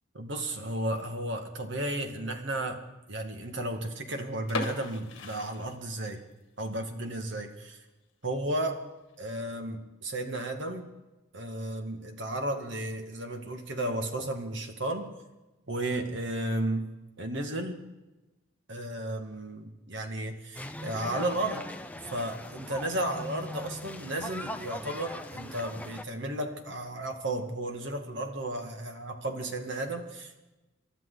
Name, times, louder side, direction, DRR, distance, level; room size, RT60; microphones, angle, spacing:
voice 1, 0.1-2.8 3.1-6.2 6.6-7.8 8.2-8.8 9.2-10.9 11.3-15.1 15.7-16.9 17.2-17.8 18.7-21.6 22.1-30.4, right 1 dB, 60° right, 4 dB, 2.1 m, -33 dB
sound 1, 4.4-6.3 6.7-6.8 7.3-7.5 7.9-8.0 8.2-8.3 9.1-9.4, left 2 dB, 60° left, 2.3 m, -37 dB
sound 2, 20.5-26.0, left 1 dB, 5° left, 0.7 m, -40 dB
27.5 x 12.5 x 4.0 m, 1.1 s
head